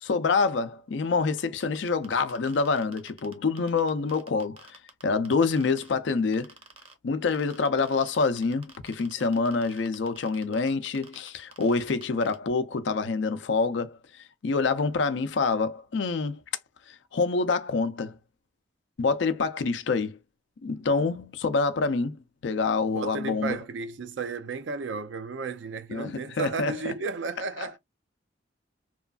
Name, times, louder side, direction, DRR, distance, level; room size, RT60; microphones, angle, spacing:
voice 1, 0.0-6.5 7.0-16.4 16.9-18.2 19.0-20.2 20.6-22.2 22.4-23.6 25.9-26.9 27.6-27.8, left 4 dB, 70° left, 0.5 m, -27 dB
sound 1, 1.4-5.9 6.3-6.9 7.3-12.4, right 4 dB, 30° right, 0.7 m, -49 dB
voice 2, 22.9-27.8, right 4 dB, 70° right, 0.5 m, -33 dB
3.0 x 2.3 x 2.3 m
head